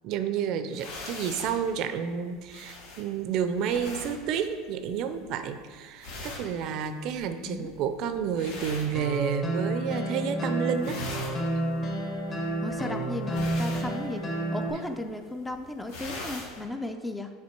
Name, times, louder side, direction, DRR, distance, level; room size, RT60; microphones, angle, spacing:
voice 1, 0.0-11.0, right 7 dB, 55° right, 9 dB, 0.5 m, -30 dB
sound 1, 0.7-9.7 10.0-10.4 10.7-16.6, left 2 dB, 75° left, 1.3 m, -42 dB
sound 2, 8.9-14.7, right 1 dB, 30° left, 1.2 m, -30 dB
voice 2, 12.6-14.2 14.5-17.3, left 2 dB, 10° left, 6 dB, 0.4 m, -35 dB
7.5 x 3.5 x 4.5 m, 1.6 s
supercardioid pair, 130°, 0 cm